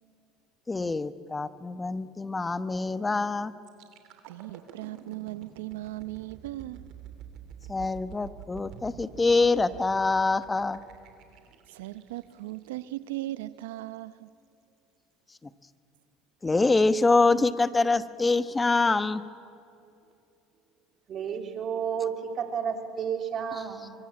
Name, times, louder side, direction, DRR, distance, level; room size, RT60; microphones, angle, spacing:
voice 1, 0.7-3.5 7.7-10.8 16.4-19.2, left 3 dB, 20° left, 1.0 m, -25 dB
sound 1, 3.6-13.5 13.9-14.1, right 9 dB, 65° right, 3.1 m, -48 dB
voice 2, 4.3-6.8 11.7-14.3, right 17 dB, 90° right, 0.8 m, -38 dB
voice 3, 21.1-23.9, right 7 dB, 45° right, 3.1 m, -31 dB
23.5 x 23.0 x 8.9 m
supercardioid pair, 95°, 0 cm